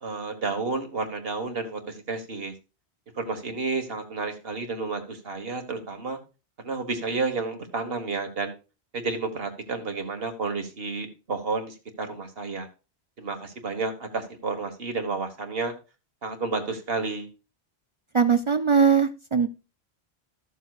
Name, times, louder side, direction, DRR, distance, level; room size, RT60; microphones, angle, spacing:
voice 1, 0.0-2.5 3.2-6.2 6.6-8.5 8.9-12.7 13.2-15.7 16.2-17.3, right 4 dB, 65° right, 6 dB, 1.7 m, -31 dB
voice 2, 18.1-19.5, right 6 dB, 45° right, 10 dB, 0.4 m, -20 dB
13.5 x 7.3 x 2.4 m, 0.31 s
omnidirectional pair, 1.1 m